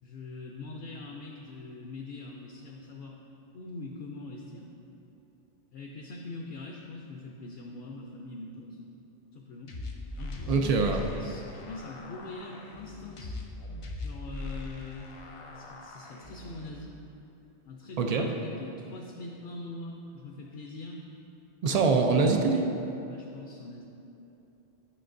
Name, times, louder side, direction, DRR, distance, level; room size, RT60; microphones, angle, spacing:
voice 1, 0.0-3.2 3.5-4.7 5.7-8.8 9.3-9.8 10.2-13.4 14.0-15.1 15.5-16.9 17.6-21.0 23.1-23.8, left 3 dB, 65° left, 0 dB, 0.8 m, -42 dB
sound 1, 9.7-16.7, left 2 dB, 45° left, 0.4 m, -40 dB
voice 2, 10.5-11.0 18.0-18.3 21.6-22.6, right 4 dB, 65° right, 3 dB, 0.3 m, -24 dB
9.7 x 5.9 x 2.6 m, 2.9 s
omnidirectional pair, 1.2 m